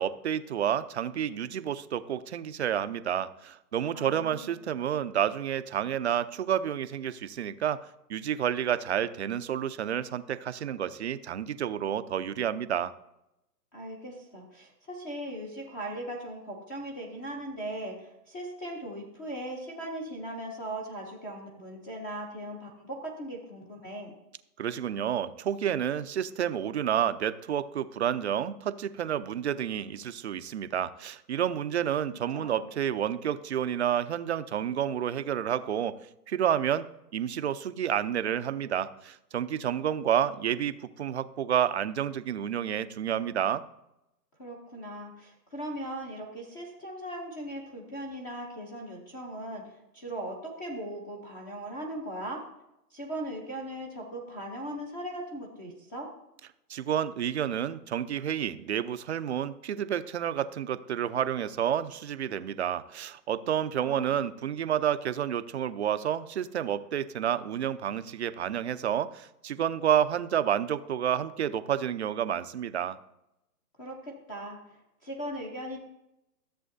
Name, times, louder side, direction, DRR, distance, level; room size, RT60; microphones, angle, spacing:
voice 1, 0.0-7.8 8.1-12.9 24.6-36.0 36.3-36.9 37.1-43.6 56.7-73.0, right 9 dB, 45° right, 13 dB, 0.5 m, -30 dB
voice 2, 3.9-4.5 13.7-24.1 32.3-32.6 44.4-52.4 52.9-56.1 63.8-64.2 73.8-74.6 75.0-75.8, right 1 dB, 15° left, 0 dB, 0.6 m, -39 dB
13.5 x 7.5 x 2.6 m, 0.85 s
hypercardioid pair, 140°, 48 cm